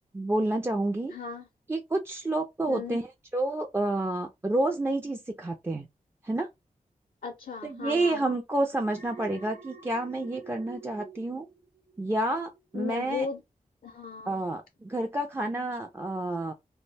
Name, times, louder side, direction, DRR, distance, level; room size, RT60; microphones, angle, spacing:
voice 1, 0.1-1.1 1.7-5.9 6.2-6.5 7.6-11.5 12.0-13.3 14.3-16.5, right 2 dB, 15° right, 0.3 m, -29 dB
voice 2, 1.1-1.5 2.7-3.0 7.2-8.4 12.7-13.4 13.8-14.4, left 5 dB, 70° left, 0.5 m, -36 dB
Alarm, 8.8-12.2 12.5-12.9, right 3 dB, 70° right, 0.5 m, -47 dB
2.3 x 2.1 x 3.2 m
wide cardioid pair, 85°, 15 cm